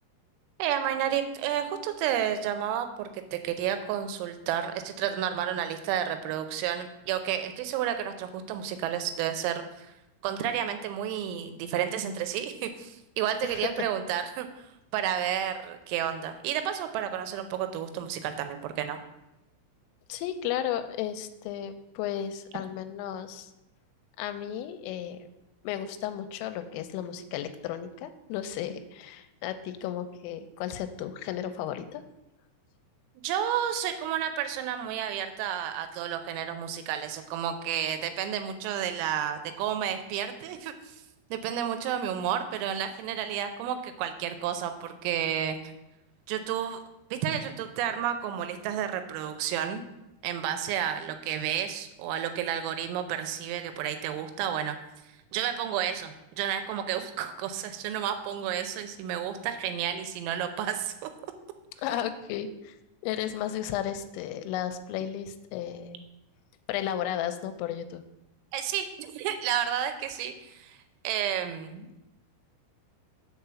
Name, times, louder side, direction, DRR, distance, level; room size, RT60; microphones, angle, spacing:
voice 1, 0.6-9.9 10.2-14.7 14.9-19.0 33.2-41.0 41.3-45.7 46.3-46.8 47.1-49.8 50.2-54.8 55.3-61.1 61.9-62.0 68.5-70.8 71.0-72.0, right 9 dB, 90° right, 8 dB, 3.3 m, -31 dB
voice 2, 13.4-13.9 14.1-14.3 20.1-23.5 24.2-25.2 25.6-32.0 61.8-62.8 63.0-66.0 66.7-68.0, left 10 dB, 85° left, 9 dB, 3.1 m, -34 dB
6.6 x 4.8 x 6.8 m, 0.94 s
omnidirectional pair, 5.8 m